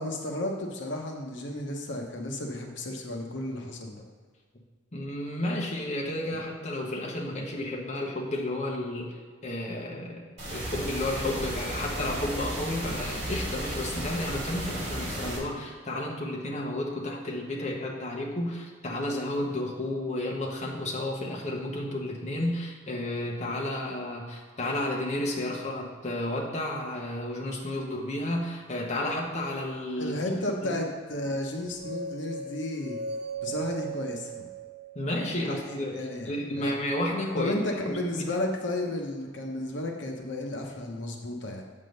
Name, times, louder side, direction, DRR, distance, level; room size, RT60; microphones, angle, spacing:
voice 1, 0.0-4.0 30.0-33.0 33.4-34.5 35.3-36.8 37.4-41.6, left 1 dB, 70° left, 2 dB, 0.9 m, -33 dB
voice 2, 4.9-10.3 10.5-30.7 34.9-38.3, left 1 dB, 35° left, -2 dB, 0.9 m, -32 dB
sound 1, 10.4-15.4, right 1 dB, 35° right, 2.4 m, -34 dB
sound 2, 31.5-35.6, right 4 dB, 55° right, 0.7 m, -38 dB
7.9 x 3.7 x 6.4 m, 1.5 s
head